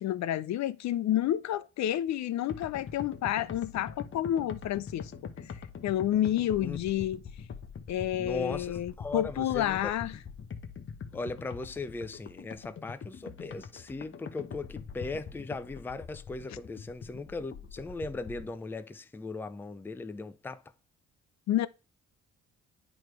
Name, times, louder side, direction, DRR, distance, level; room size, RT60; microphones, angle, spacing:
voice 1, 0.0-5.6 5.8-7.2 7.9-10.2 21.5-21.7, left 12 dB, 65° left, 0.5 m, -30 dB
sound 1, 2.5-18.5, left 6 dB, 40° left, 0.9 m, -44 dB
voice 2, 8.2-9.9 11.1-20.6, left 3 dB, 5° left, 0.4 m, -38 dB
8.7 x 3.1 x 4.7 m
cardioid pair, 90°, 30 cm